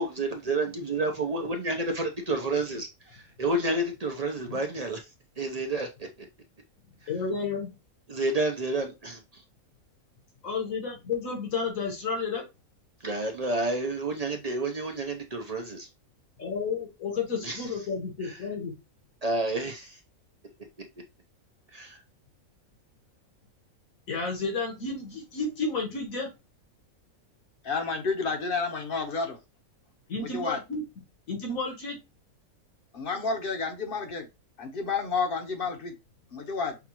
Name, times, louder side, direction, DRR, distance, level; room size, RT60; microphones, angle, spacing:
voice 1, 0.0-5.0 5.4-6.1 8.1-9.4 13.0-15.9 17.4-17.6 19.2-20.0 21.7-22.0, right 2 dB, 45° right, 0.5 m, -30 dB
voice 2, 7.1-7.7 10.4-12.4 16.4-18.7 24.1-26.3 30.1-30.8 31.3-32.0, left 4 dB, 75° left, 1.8 m, -31 dB
voice 3, 27.6-29.4 30.2-30.6 32.9-34.3 34.6-36.0 36.3-36.8, left 4 dB, 45° left, 0.9 m, -30 dB
5.9 x 2.4 x 2.9 m
omnidirectional pair, 1.5 m